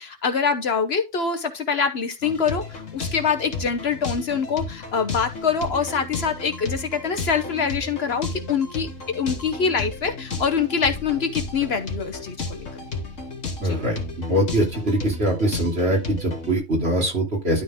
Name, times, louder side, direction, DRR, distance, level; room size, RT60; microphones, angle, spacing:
voice 1, 0.0-8.9 9.1-12.7 13.6-13.8, left 6 dB, 55° left, 1.1 m, -24 dB
sound 1, 2.2-16.6, left 3 dB, 75° left, 2.1 m, -33 dB
voice 2, 13.6-17.6, right 1 dB, 55° right, 3.1 m, -23 dB
12.0 x 4.1 x 3.6 m
omnidirectional pair, 1.3 m